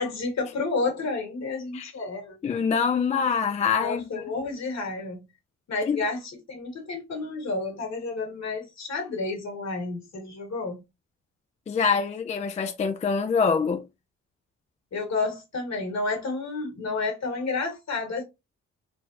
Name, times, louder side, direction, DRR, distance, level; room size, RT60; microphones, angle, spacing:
voice 1, 0.0-2.4 3.8-5.2 5.7-10.8 14.9-18.2, left 3 dB, 60° left, 1.6 m, -30 dB
voice 2, 2.4-4.2 5.8-6.0 11.7-13.8, left 5 dB, 25° left, 0.3 m, -25 dB
3.3 x 2.2 x 2.5 m
cardioid pair, 65°, 30 cm